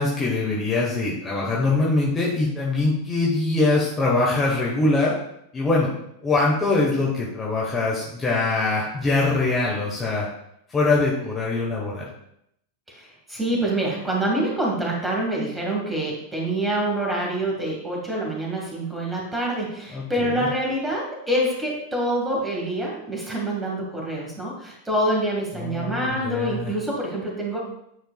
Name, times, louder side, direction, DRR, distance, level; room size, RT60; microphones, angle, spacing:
voice 1, 0.0-5.1 5.5-5.9 6.2-10.3 10.7-12.1 19.9-20.0 20.4-20.5 25.6-26.7, left 3 dB, 20° left, -4 dB, 1.2 m, -23 dB
voice 2, 12.9-27.6, right 1 dB, 10° right, -2 dB, 1.9 m, -26 dB
9.6 x 4.4 x 2.3 m, 0.76 s
figure-of-eight pair, 90°, 0 cm